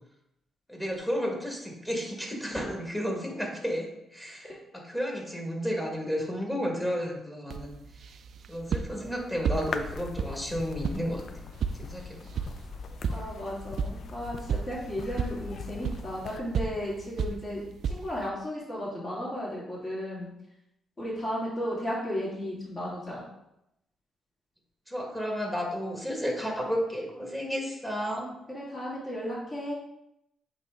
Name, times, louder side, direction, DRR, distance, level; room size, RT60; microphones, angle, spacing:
voice 1, 0.7-7.8 8.5-11.2 11.8-12.3 24.9-28.3, equal, 10° left, 0 dB, 1.7 m, -32 dB
sound 1, 7.5-18.3, right 6 dB, 65° right, 0.4 m, -35 dB
sound 2, 9.5-16.4, left 5 dB, 60° left, 0.4 m, -41 dB
voice 2, 13.1-20.3 21.0-23.2 28.5-29.8, equal, 40° left, -6 dB, 2.1 m, -34 dB
8.1 x 3.2 x 3.7 m, 0.83 s
cardioid pair, 90°, 0 cm